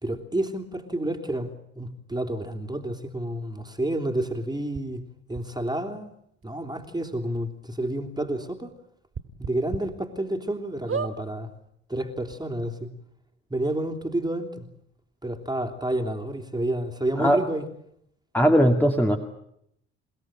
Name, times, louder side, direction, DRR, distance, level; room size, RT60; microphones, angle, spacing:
voice 1, 0.0-5.0 5.3-6.1 6.4-8.7 9.4-11.5 11.9-12.9 13.5-14.7 15.2-17.7, right 1 dB, 10° right, 4 dB, 3.3 m, -30 dB
sound 1, 4.7-4.8 5.3-5.4 6.4-6.5 6.8-6.9 7.4-7.5 9.1-9.8 10.3-10.4 10.9-11.2 12.0-12.1 12.3-12.4, right 6 dB, 40° right, 3.2 m, -31 dB
voice 2, 18.3-19.2, equal, 5° left, 4 dB, 2.5 m, -19 dB
29.5 x 17.0 x 9.0 m, 0.75 s
hypercardioid pair, 55°, 33 cm